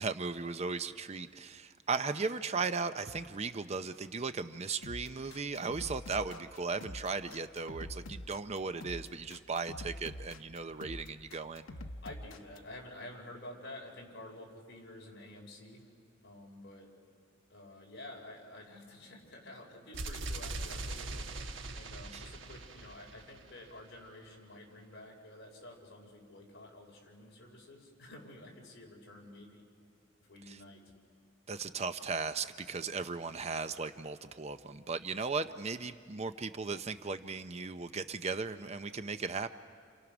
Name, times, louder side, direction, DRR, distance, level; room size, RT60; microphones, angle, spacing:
voice 1, 0.0-11.6 22.1-22.2 30.5-30.6 31.5-39.5, right 4 dB, 30° right, 10 dB, 0.6 m, -37 dB
sound 1, 4.8-12.6, left 1 dB, 85° left, 1.0 m, -45 dB
voice 2, 12.0-15.8 16.2-16.9 17.5-21.5 21.7-29.6 30.3-30.8, left 1 dB, 55° left, -1 dB, 5.1 m, -50 dB
sound 2, 19.9-23.8, right 2 dB, 65° right, 1.3 m, -41 dB
30.0 x 29.5 x 6.1 m, 2.1 s
head